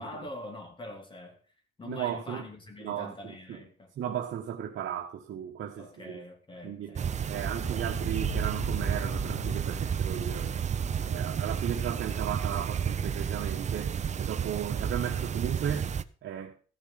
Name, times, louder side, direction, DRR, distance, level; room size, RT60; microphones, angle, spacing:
voice 1, 0.0-1.4 1.8-3.9 5.8-7.9, left 2 dB, 25° left, 2.9 m, -44 dB
voice 2, 1.8-2.4 2.8-3.6 4.0-6.1 6.6-7.0 7.3-10.6 11.0-15.9 16.2-16.5, right 9 dB, 60° right, 1.5 m, -35 dB
sound 1, 7.0-16.0, right 7 dB, 35° right, 0.6 m, -31 dB
sound 2, 7.3-12.0, right 3 dB, 45° left, 3.9 m, -41 dB
14.5 x 7.1 x 5.8 m
cardioid pair, 140°, 21 cm